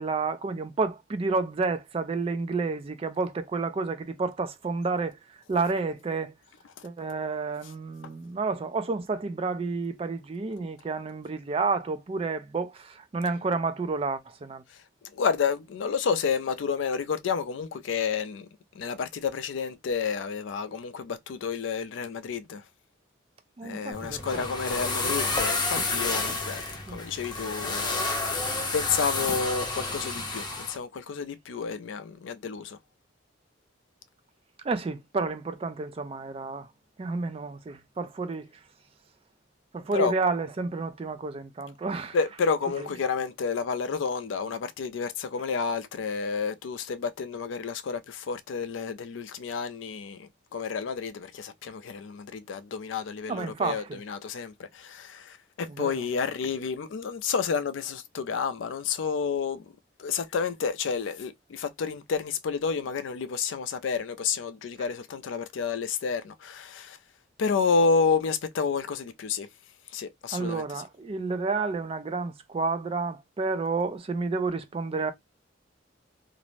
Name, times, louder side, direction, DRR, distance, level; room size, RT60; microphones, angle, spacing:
voice 1, 0.0-5.2 5.5-6.3 6.8-14.6 23.6-24.5 26.9-27.0 34.6-36.7 37.0-38.5 39.7-42.2 53.3-54.0 55.8-56.0 70.3-75.1, right 4 dB, 30° right, 0.3 m, -30 dB
voice 2, 15.1-18.5 18.7-22.6 23.6-32.8 39.9-40.1 42.1-59.7 60.0-67.0 67.4-69.5 69.9-70.6, left 5 dB, 80° left, 0.4 m, -30 dB
sound 1, 23.9-30.8, left 3 dB, 25° left, 0.6 m, -30 dB
2.5 x 2.0 x 3.1 m
head